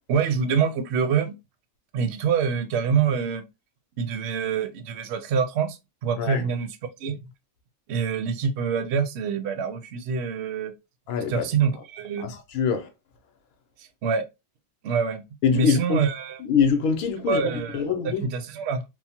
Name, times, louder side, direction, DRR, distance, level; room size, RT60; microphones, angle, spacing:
voice 1, 0.1-1.3 1.9-3.4 4.0-7.2 7.9-10.7 11.3-12.3 13.8-14.3 14.8-15.2 15.5-16.4 17.3-18.8, right 6 dB, 65° right, 0.7 m, -26 dB
voice 2, 11.1-11.4 12.5-12.9 15.4-16.0 16.5-17.4 17.7-18.2, left 6 dB, 85° left, 1.1 m, -23 dB
3.0 x 2.0 x 2.7 m
omnidirectional pair, 1.4 m